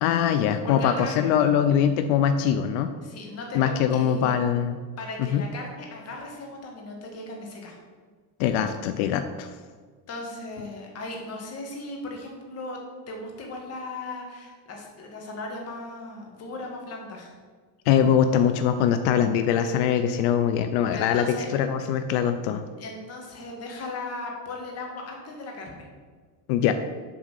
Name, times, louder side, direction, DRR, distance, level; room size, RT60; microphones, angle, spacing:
voice 1, 0.0-2.9 3.5-4.8 5.2-5.4 8.4-9.5 17.9-22.6 26.5-26.7, left 8 dB, 80° left, 9 dB, 0.6 m, -22 dB
voice 2, 0.7-1.1 3.0-4.3 5.0-7.7 10.1-12.8 13.1-17.3 20.9-21.5 22.8-25.9, left 2 dB, 30° left, 1 dB, 1.5 m, -37 dB
7.2 x 3.7 x 6.5 m, 1.5 s
cardioid pair, 155°, 48 cm